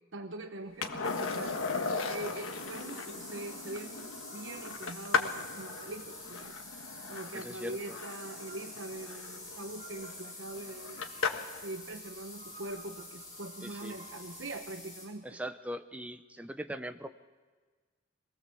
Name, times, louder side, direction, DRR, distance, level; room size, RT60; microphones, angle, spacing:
voice 1, 0.1-1.6 2.1-4.1 4.3-6.5 7.1-11.1 11.6-15.4, right 2 dB, 65° right, 7 dB, 1.0 m, -43 dB
Skateboard, 0.8-11.7 14.2-14.3, left 4 dB, 85° left, 1.4 m, -37 dB
sound 1, 1.0-15.0, left 2 dB, 20° left, 7.0 m, -48 dB
sound 2, 3.8-14.6, right 3 dB, 35° right, 5.7 m, -58 dB
voice 2, 7.3-8.0 13.6-13.9 15.2-17.1, equal, 5° right, 9 dB, 0.8 m, -40 dB
24.0 x 18.5 x 7.1 m, 1.4 s
head